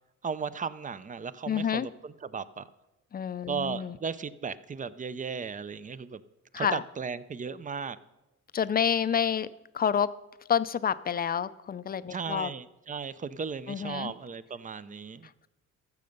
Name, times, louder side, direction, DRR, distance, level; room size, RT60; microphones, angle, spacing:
voice 1, 0.2-2.7 3.5-6.2 6.6-8.0 12.1-15.3, right 5 dB, 25° right, 16 dB, 0.5 m, -36 dB
voice 2, 1.5-1.9 3.1-4.0 6.5-6.8 8.5-9.5 9.7-10.1 10.5-12.5 13.7-14.1, left 8 dB, 30° left, 15 dB, 0.4 m, -28 dB
14.0 x 6.8 x 5.3 m, 0.99 s
cardioid pair, 90°, 30 cm